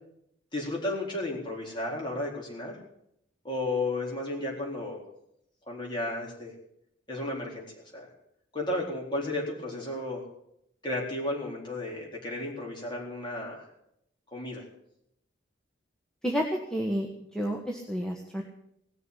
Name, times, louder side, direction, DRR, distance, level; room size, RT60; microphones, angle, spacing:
voice 1, 0.5-2.8 3.4-5.0 5.7-6.5 7.1-7.7 7.9-8.1 8.5-10.2 10.8-13.7 14.3-14.6, left 2 dB, 25° left, -2 dB, 4.3 m, -33 dB
voice 2, 16.2-18.4, equal, 5° left, 0 dB, 1.3 m, -30 dB
18.0 x 6.9 x 9.6 m, 0.75 s
head